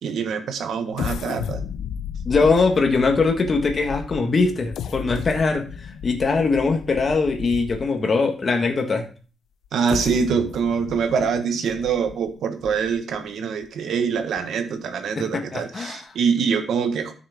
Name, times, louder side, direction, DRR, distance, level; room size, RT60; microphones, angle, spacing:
voice 1, 0.0-1.6 9.7-17.1, right 6 dB, 75° right, 8 dB, 1.4 m, -24 dB
sound 1, 0.9-8.1 8.7-8.8 9.6-13.2 13.6-13.7 14.2-14.4, left 8 dB, 80° left, 0.6 m, -34 dB
voice 2, 2.2-9.1 15.1-16.1, left 4 dB, 35° left, 3 dB, 1.6 m, -21 dB
13.0 x 6.6 x 3.6 m, 0.37 s
cardioid pair, 130°, 0 cm